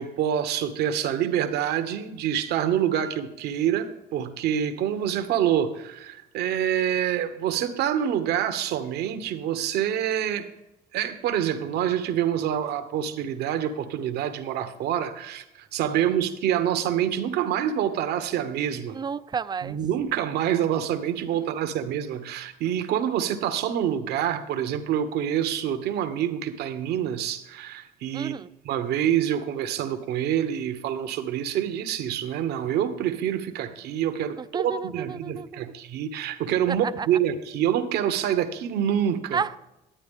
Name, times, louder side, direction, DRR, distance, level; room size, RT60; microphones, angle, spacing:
voice 1, 0.0-10.5 10.9-19.0 19.6-28.4 28.6-39.4, right 10 dB, 75° right, 9 dB, 1.1 m, -26 dB
voice 2, 18.9-19.8 28.1-28.5 34.4-35.6 36.7-37.1 39.3-39.6, right 6 dB, 25° right, 14 dB, 0.4 m, -31 dB
11.5 x 8.8 x 3.7 m, 0.92 s
cardioid pair, 110°, 17 cm